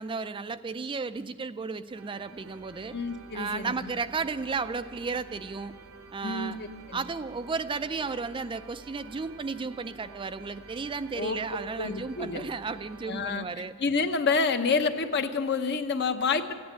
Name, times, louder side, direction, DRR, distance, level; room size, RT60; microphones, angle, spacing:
voice 1, 0.0-3.0 3.3-5.7 6.1-6.6 6.9-13.7, right 4 dB, 20° right, 12 dB, 0.4 m, -34 dB
sound 1, 1.9-13.9, right 4 dB, 70° right, 0.9 m, -50 dB
voice 2, 2.9-3.9 6.2-7.0 11.1-11.4 11.8-12.4 13.1-13.4 13.8-16.5, left 4 dB, 50° left, 8 dB, 0.9 m, -28 dB
15.5 x 9.5 x 9.1 m, 2.2 s
head